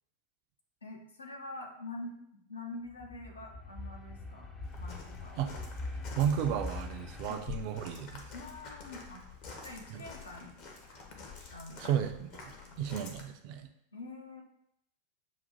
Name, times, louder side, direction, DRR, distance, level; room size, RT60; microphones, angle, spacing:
voice 1, 0.8-4.5 4.8-5.5 7.3-7.4 8.3-9.2 9.6-10.5 11.5-12.0 12.6-12.8 13.9-14.4, left 2 dB, 75° left, 1 dB, 0.7 m, -45 dB
sound 1, 2.9-7.2, left 2 dB, 15° left, 0.5 m, -42 dB
Walk footsteps, 4.6-13.2, left 5 dB, 45° left, 0.8 m, -48 dB
voice 2, 6.1-8.2 9.9-10.0 11.8-13.7, right 9 dB, 45° right, 6 dB, 0.4 m, -33 dB
7.0 x 2.4 x 2.7 m, 0.77 s
figure-of-eight pair, 90°, 0 cm